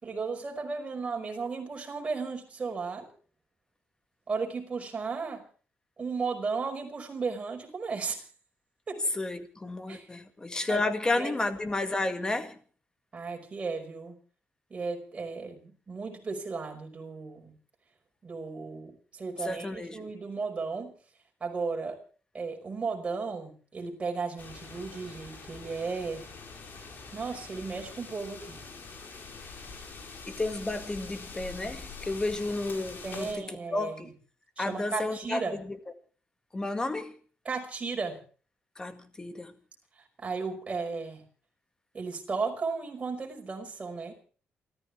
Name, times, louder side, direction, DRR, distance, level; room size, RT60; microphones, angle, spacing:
voice 1, 0.0-3.1 4.3-5.4 6.0-8.2 8.9-9.0 9.9-10.1 10.7-10.8 11.1-11.3 13.1-14.2 14.7-17.6 18.2-20.9 21.4-22.0 22.3-26.3 27.1-28.6 33.0-34.0 34.6-35.6 37.5-38.2 40.2-41.2 41.9-44.1, right 4 dB, 30° right, 5.3 m, -35 dB
voice 2, 9.1-12.6 19.4-20.1 30.3-34.1 34.6-35.8 36.5-37.1 38.8-39.5, left 2 dB, 20° left, 2.0 m, -32 dB
sound 1, 24.4-33.3, left 4 dB, 55° left, 5.1 m, -45 dB
28.5 x 14.0 x 3.4 m
cardioid pair, 140°, 4 cm